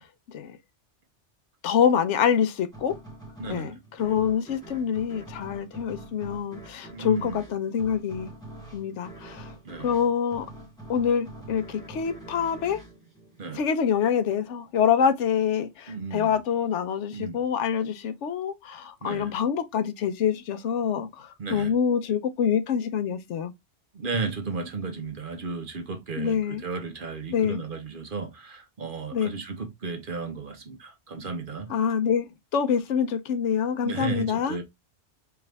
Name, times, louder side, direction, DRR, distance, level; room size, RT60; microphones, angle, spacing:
voice 1, 1.6-2.9 3.5-8.3 8.7-9.5 9.8-10.5 10.9-12.8 13.5-23.5 26.2-26.6 27.3-27.6 29.1-29.3 31.7-34.6, left 7 dB, 90° left, 1.0 m, -26 dB
sound 1, 2.7-14.0, right 2 dB, 5° left, 1.1 m, -45 dB
voice 2, 3.4-3.7 6.9-7.4 9.6-9.9 13.4-13.6 15.9-16.3 17.1-17.4 19.0-19.3 21.4-21.7 23.9-31.7 33.8-34.6, right 4 dB, 50° right, 1.0 m, -34 dB
4.7 x 2.4 x 3.3 m
omnidirectional pair, 1.2 m